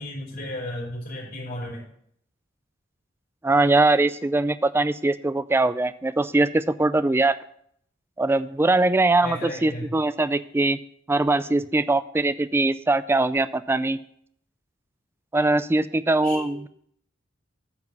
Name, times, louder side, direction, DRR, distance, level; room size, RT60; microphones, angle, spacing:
voice 1, 0.0-1.8 9.2-9.9 16.2-16.7, left 1 dB, 50° left, -4 dB, 4.3 m, -34 dB
voice 2, 3.4-7.4 8.2-10.8 11.1-14.0 15.3-16.7, right 2 dB, 10° right, 14 dB, 0.3 m, -22 dB
8.9 x 6.0 x 6.0 m, 0.67 s
head